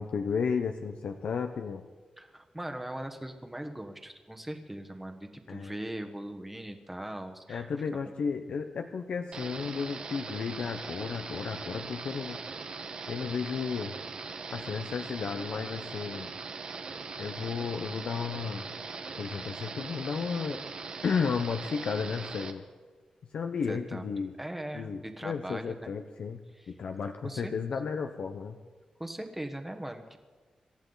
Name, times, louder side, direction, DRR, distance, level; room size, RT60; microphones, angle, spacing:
voice 1, 0.0-1.8 5.5-5.7 7.5-12.4 13.1-14.0 14.5-16.3 17.2-18.6 19.2-20.6 21.0-22.6 23.3-24.3 24.7-28.6, left 6 dB, 70° left, 5 dB, 0.8 m, -33 dB
voice 2, 2.2-7.7 23.7-24.0 24.4-25.9 26.5-27.5 29.0-30.2, right 1 dB, 10° right, 5 dB, 1.2 m, -40 dB
sound 1, 9.3-22.5, right 4 dB, 50° right, 1.3 m, -40 dB
26.5 x 13.5 x 4.0 m, 1.4 s
wide cardioid pair, 150°, 2 cm